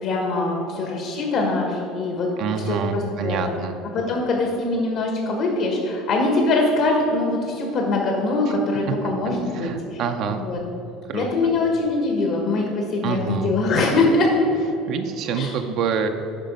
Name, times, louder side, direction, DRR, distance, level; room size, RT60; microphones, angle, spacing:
voice 1, 0.0-2.3 2.6-3.4 3.9-10.0 10.3-10.6 11.1-14.3 15.3-15.5, left 2 dB, 60° left, 1 dB, 1.4 m, -23 dB
voice 2, 2.4-3.8 8.9-9.0 9.5-10.4 11.1-11.5 13.0-13.5 14.9-16.1, right 6 dB, 55° right, 5 dB, 0.6 m, -26 dB
8.9 x 5.5 x 5.3 m, 3.0 s
cardioid pair, 135°, 0 cm